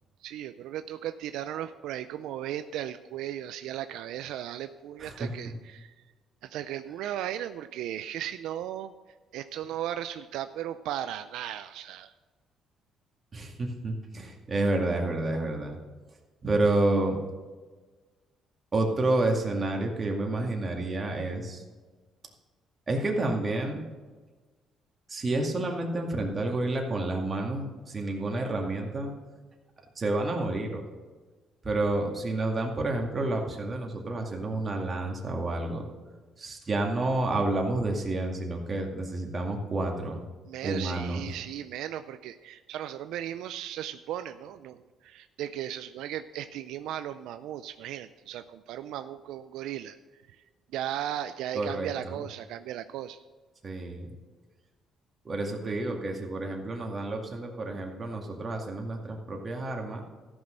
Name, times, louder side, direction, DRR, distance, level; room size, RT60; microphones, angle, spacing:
voice 1, 0.2-6.0 6.4-8.9 9.3-12.1 40.5-50.0 50.3-50.4 50.7-53.2, right 11 dB, 85° right, 10 dB, 0.4 m, -36 dB
voice 2, 5.0-5.3 13.3-15.8 16.4-17.2 18.7-21.6 22.9-23.8 25.1-29.2 30.0-30.8 31.6-35.8 36.4-40.2 40.6-41.2 51.5-52.2 53.6-54.1 55.2-60.0, right 2 dB, 30° right, 1 dB, 2.1 m, -29 dB
14.0 x 6.2 x 6.5 m, 1.3 s
cardioid pair, 110°, 0 cm